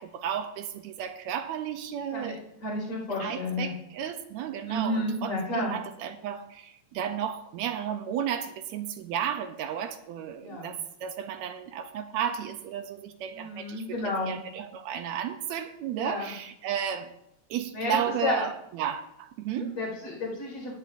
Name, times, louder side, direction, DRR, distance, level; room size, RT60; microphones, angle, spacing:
voice 1, 0.0-2.4 3.2-14.0 14.3-17.1 17.5-19.7, right 9 dB, 80° right, 9 dB, 1.9 m, -33 dB
voice 2, 2.1-3.7 4.7-5.7 10.4-10.7 13.3-14.4 15.9-16.3 17.7-18.4 19.5-20.7, left 1 dB, 65° left, -4 dB, 6.1 m, -31 dB
17.5 x 9.4 x 2.6 m, 0.80 s
omnidirectional pair, 3.3 m